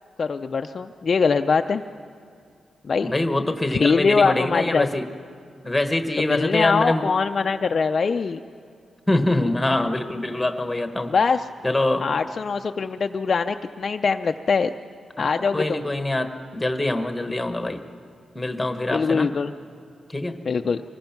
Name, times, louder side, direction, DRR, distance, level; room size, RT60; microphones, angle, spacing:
voice 1, 0.2-1.8 2.8-3.1 3.8-4.9 6.2-8.4 11.1-11.4 12.0-14.7 15.2-15.8 18.9-19.5 20.5-20.8, left 5 dB, 40° left, 6 dB, 0.4 m, -22 dB
voice 2, 3.0-5.0 5.6-7.1 9.1-11.1 11.6-12.1 15.2-17.8 18.3-19.3 20.1-20.4, left 1 dB, 10° left, 7 dB, 1.2 m, -24 dB
24.5 x 20.0 x 5.9 m, 2.4 s
wide cardioid pair, 145°, 0 cm